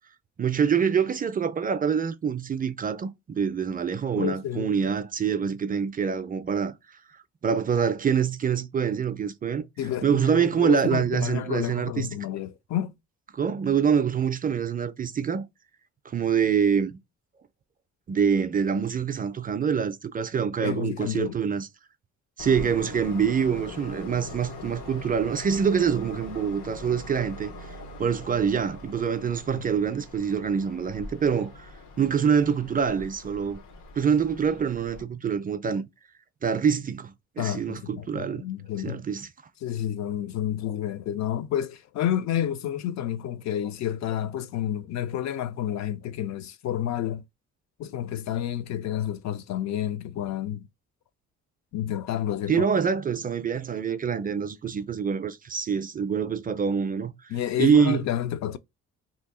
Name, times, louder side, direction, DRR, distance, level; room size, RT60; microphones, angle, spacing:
voice 1, 0.4-6.7 7.4-9.7 10.0-12.1 13.3-15.4 16.1-17.0 18.1-21.7 22.4-31.7 32.0-33.6 34.0-35.8 36.4-38.4 38.8-39.3 52.5-57.1 57.6-58.0, right 7 dB, 30° right, 0.4 m, -25 dB
voice 2, 4.1-4.7 9.8-12.9 20.6-21.4 29.5-29.6 37.4-39.0 39.6-47.2 47.8-50.7 51.7-52.7 57.3-58.6, left 10 dB, 65° left, 0.5 m, -30 dB
Train, 22.4-35.0, left 2 dB, 80° left, 0.9 m, -42 dB
2.8 x 2.6 x 3.6 m
cardioid pair, 90°, 30 cm